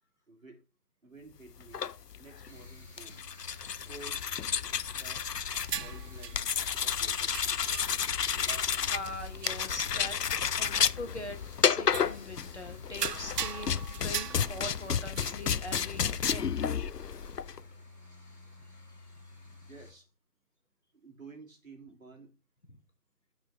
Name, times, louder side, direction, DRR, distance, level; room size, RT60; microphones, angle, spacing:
voice 1, 0.3-0.6 1.0-1.8 2.2-3.2 3.9-4.2 5.0-5.3 5.8-6.5 6.8-7.8 19.6-20.1 20.9-22.3, right 3 dB, 55° right, 2.7 m, -52 dB
sound 1, 1.6-17.6, left 7 dB, 75° left, 0.6 m, -31 dB
sound 2, 2.4-19.9, left 2 dB, 10° left, 2.4 m, -52 dB
sound 3, 5.5-6.8 7.3-8.1 8.4-9.1 9.4-10.1 10.9-11.0 11.9-12.3 12.6-12.7 12.9-16.0, right 7 dB, 75° right, 0.6 m, -40 dB
voice 2, 8.8-16.5, left 1 dB, 45° left, 1.2 m, -42 dB
8.9 x 5.0 x 4.1 m
figure-of-eight pair, 165°, 48 cm